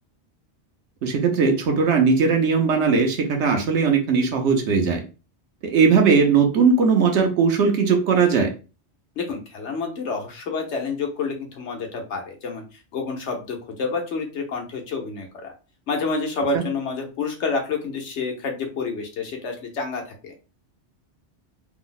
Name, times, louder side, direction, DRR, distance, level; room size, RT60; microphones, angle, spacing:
voice 1, 1.0-5.0 5.6-8.5 16.5-16.6, right 5 dB, 85° right, 3 dB, 1.1 m, -19 dB
voice 2, 9.2-15.5 15.9-20.3, left 4 dB, 85° left, 3 dB, 1.2 m, -29 dB
3.4 x 2.0 x 3.8 m, 0.32 s
omnidirectional pair, 1.1 m